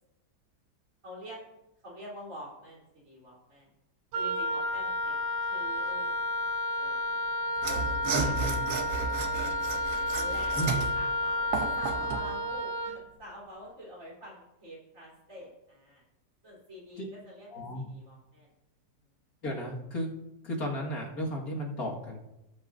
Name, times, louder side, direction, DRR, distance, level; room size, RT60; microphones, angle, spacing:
voice 1, 1.0-1.4 1.8-3.7 4.1-6.5 6.8-7.5 7.8-8.4 9.5-9.7 10.1-16.0 16.4-18.5, equal, 45° right, -5 dB, 4.1 m, -47 dB
Wind instrument woodwind instrument, 4.1-13.0, left 1 dB, 85° right, 1.7 m, -31 dB
Mechanisms / Sawing, 7.6-12.3, right 4 dB, 65° right, 1.5 m, -33 dB
voice 2, 8.1-8.6 10.6-10.8 17.0-17.1 17.5-17.8 19.4-20.1 20.4-22.2, equal, 60° left, -2 dB, 2.2 m, -34 dB
18.5 x 8.3 x 2.6 m, 0.91 s
omnidirectional pair, 1.8 m